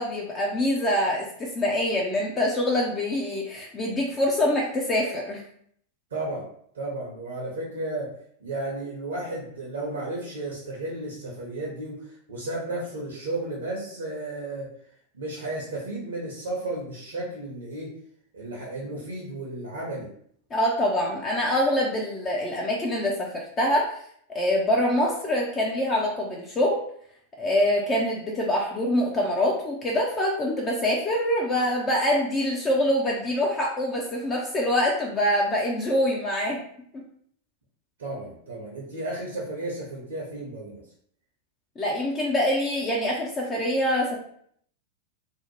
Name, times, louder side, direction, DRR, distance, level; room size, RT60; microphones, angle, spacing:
voice 1, 0.0-5.4 20.5-24.0 24.3-26.8 27.4-36.6 41.8-44.2, left 1 dB, 25° left, -2 dB, 0.4 m, -25 dB
voice 2, 6.1-6.5 6.7-8.1 8.4-14.7 15.1-18.0 18.3-20.1 38.0-40.8, right 2 dB, 65° right, -4 dB, 0.6 m, -33 dB
2.6 x 2.0 x 2.9 m, 0.64 s
figure-of-eight pair, 90°, 0 cm